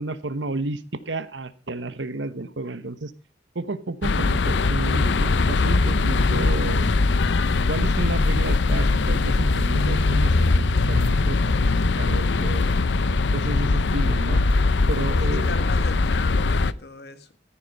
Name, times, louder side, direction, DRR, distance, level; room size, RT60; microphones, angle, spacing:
voice 1, 0.0-3.1 3.5-6.9 7.7-11.4 12.0-12.6 13.3-14.4 14.9-15.5, right 2 dB, 85° right, 15 dB, 1.2 m, -31 dB
sound 1, 4.0-16.7, left 3 dB, 75° left, 0.6 m, -21 dB
voice 2, 12.3-12.8 15.3-17.4, left 3 dB, 60° left, 11 dB, 1.6 m, -38 dB
14.5 x 9.7 x 5.2 m, 0.34 s
head